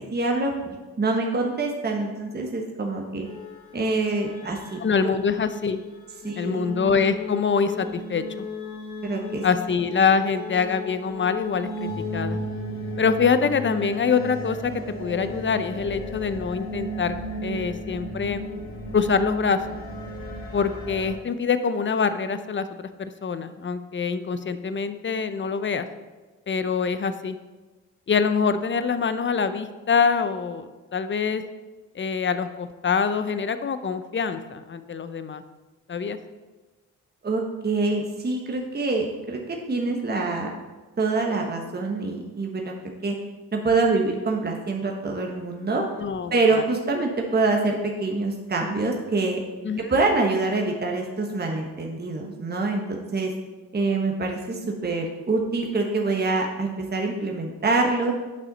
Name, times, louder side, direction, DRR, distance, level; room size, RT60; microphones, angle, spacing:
voice 1, 0.0-3.3 3.7-4.8 6.2-6.6 9.0-9.4 37.2-40.5 41.0-42.7 43.0-43.2 43.5-45.8 46.3-49.4 49.8-53.3 53.7-58.1, right 3 dB, 25° right, 1 dB, 1.1 m, -25 dB
sound 1, 3.2-21.2, equal, 60° left, 2.0 m, -35 dB
voice 2, 4.8-5.8 6.4-8.5 9.4-12.4 13.0-17.1 17.4-18.4 18.9-19.8 20.5-25.9 26.5-27.4 28.1-31.4 31.9-35.4 35.9-36.2 46.0-46.6 49.6-49.9, left 5 dB, 30° left, 11 dB, 0.6 m, -25 dB
8.2 x 5.5 x 4.0 m, 1.2 s
hypercardioid pair, 45°, 40 cm